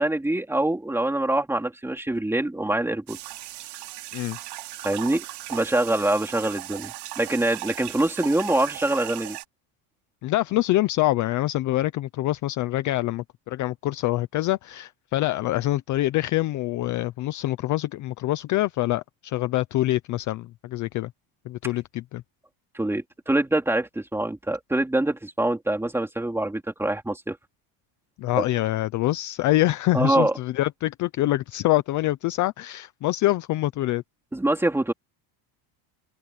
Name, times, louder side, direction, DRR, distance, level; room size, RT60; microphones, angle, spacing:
voice 1, 0.0-3.2 4.8-9.4 22.7-27.4 29.9-30.4 34.3-34.9, right 1 dB, 5° right, 3.2 m, -25 dB
sound 1, 3.1-9.4, right 15 dB, 55° right, 3.2 m, -37 dB
voice 2, 10.2-21.1 21.5-22.2 28.2-34.0, left 16 dB, 40° left, 0.5 m, -25 dB
open air
cardioid pair, 180°, 49 cm